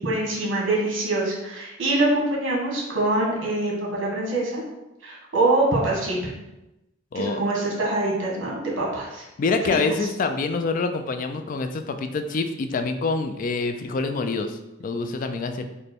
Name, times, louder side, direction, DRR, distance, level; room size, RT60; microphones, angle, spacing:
voice 1, 0.0-4.6 5.0-6.3 7.1-9.2 9.6-9.8, right 2 dB, 75° right, -3 dB, 1.5 m, -24 dB
voice 2, 9.4-15.6, left 4 dB, 45° left, 7 dB, 0.3 m, -26 dB
5.0 x 2.2 x 4.4 m, 0.95 s
head